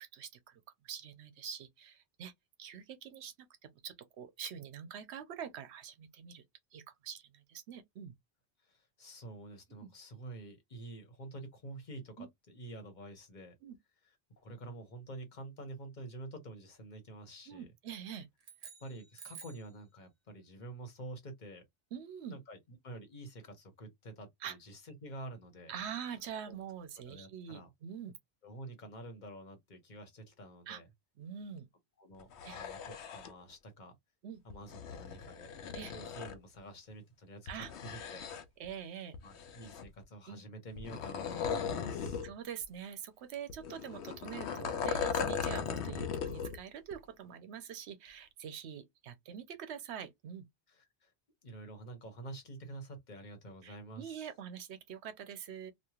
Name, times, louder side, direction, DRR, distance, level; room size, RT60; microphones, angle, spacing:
voice 1, 0.0-2.3 2.6-3.3 3.6-6.4 6.7-8.1 9.7-9.9 12.2-12.3 13.6-13.8 17.5-18.3 21.9-22.4 24.4-24.6 25.7-28.2 30.7-30.8 31.2-31.7 32.4-32.6 34.2-34.4 35.7-35.9 37.5-37.7 38.6-39.2 40.3-40.4 42.2-50.5 53.6-55.7, right 8 dB, 80° right, 0.9 m, -45 dB
voice 2, 8.6-13.5 14.4-17.7 18.8-21.6 22.3-22.6 22.8-25.7 26.5-26.6 27.1-27.7 28.4-30.9 32.0-33.9 34.4-35.5 35.9-38.2 39.2-42.2 50.7-51.1 51.4-54.3, right 2 dB, 45° left, 1.1 m, -48 dB
sound 1, 18.4-19.8, right 6 dB, 45° right, 0.7 m, -51 dB
sound 2, 32.2-33.3 34.5-36.4 37.5-38.7 39.1-40.0 40.8-42.3 42.6-42.7 43.5-46.6 46.9-47.0, left 6 dB, 85° left, 0.9 m, -38 dB
3.0 x 2.4 x 2.3 m
omnidirectional pair, 1.1 m